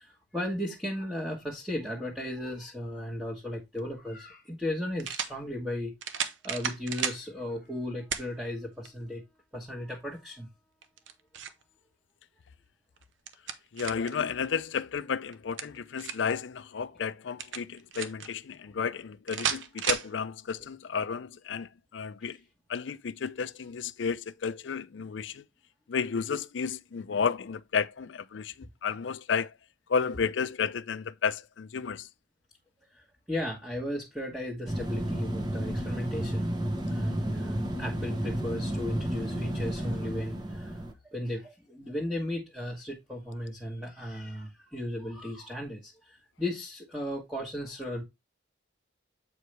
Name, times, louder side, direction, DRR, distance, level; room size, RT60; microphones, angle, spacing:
voice 1, 0.0-9.2 9.5-10.5 18.7-18.8 22.2-22.4 32.9-36.5 36.9-48.0, left 1 dB, 5° right, 1.2 m, -36 dB
sound 1, 3.7-3.8 5.0-5.4 6.0-7.2 8.1-8.3 8.9-9.0 10.8-11.6 13.0-14.2 15.3-16.3 17.4-18.3 19.3-20.1, right 8 dB, 85° right, 0.7 m, -33 dB
voice 2, 13.7-22.4 22.7-25.4 25.9-29.5 29.9-32.1, left 6 dB, 75° left, 0.5 m, -32 dB
sound 2, 34.7-40.9, right 1 dB, 25° right, 1.0 m, -32 dB
7.8 x 4.7 x 3.2 m
head